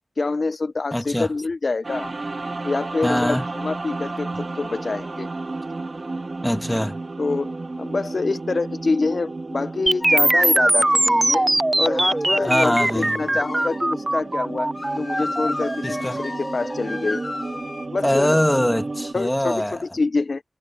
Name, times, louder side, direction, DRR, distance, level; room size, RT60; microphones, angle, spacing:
voice 1, 0.2-2.1 2.6-5.3 7.2-7.5 7.8-11.5 11.8-14.7 15.0-17.2 17.9-18.4 19.1-20.4, left 3 dB, 70° left, 0.3 m, -26 dB
voice 2, 0.9-1.3 3.0-3.5 6.4-7.0 12.4-13.3 15.8-16.2 18.0-19.8, left 1 dB, 10° left, 1.7 m, -22 dB
sound 1, 1.8-19.1, right 3 dB, 55° right, 2.0 m, -33 dB
sound 2, 9.9-17.8, right 1 dB, 30° right, 0.5 m, -21 dB
sound 3, 10.0-11.5 12.2-13.8 14.7-17.9, left 2 dB, 35° left, 1.2 m, -33 dB
wide cardioid pair, 75°, 0 cm